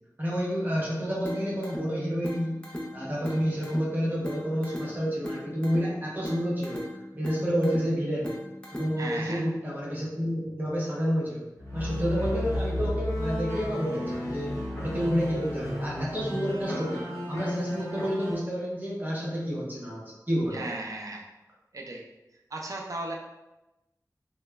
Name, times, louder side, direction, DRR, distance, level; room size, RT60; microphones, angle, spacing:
voice 1, 0.2-2.6 2.9-6.8 7.1-8.3 8.7-11.5 11.7-14.5 14.8-20.7, equal, 25° right, -6 dB, 0.8 m, -29 dB
sound 1, 1.2-9.2, left 1 dB, 15° left, 0.5 m, -39 dB
voice 2, 9.0-9.5 20.5-21.3 21.7-22.0 22.5-23.1, right 2 dB, 55° right, 0 dB, 0.4 m, -36 dB
sound 2, 11.6-18.3, left 1 dB, 45° left, 0.9 m, -33 dB
3.0 x 2.1 x 2.2 m, 0.99 s
wide cardioid pair, 55°, 7 cm